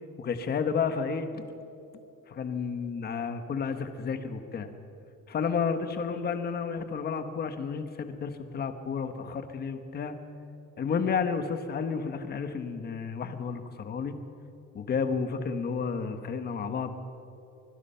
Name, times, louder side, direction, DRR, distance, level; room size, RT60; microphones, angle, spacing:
voice 1, 0.2-1.4 2.3-4.7 5.3-10.2 10.8-14.2 14.7-16.9, left 5 dB, 25° left, 8 dB, 1.3 m, -31 dB
25.0 x 22.5 x 5.7 m, 2.8 s
cardioid pair, 180°, 35 cm